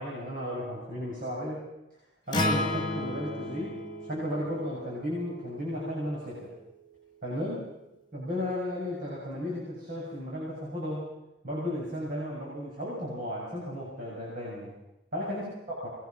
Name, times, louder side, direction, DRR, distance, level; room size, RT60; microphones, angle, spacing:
voice 1, 0.0-1.6 2.3-6.5 7.2-7.7 8.1-11.1 11.4-14.7 15.1-15.9, equal, 50° right, -6 dB, 7.4 m, -34 dB
Acoustic guitar, 2.3-6.6, left 1 dB, 25° left, 2.0 m, -34 dB
26.5 x 21.5 x 6.1 m, 0.92 s
head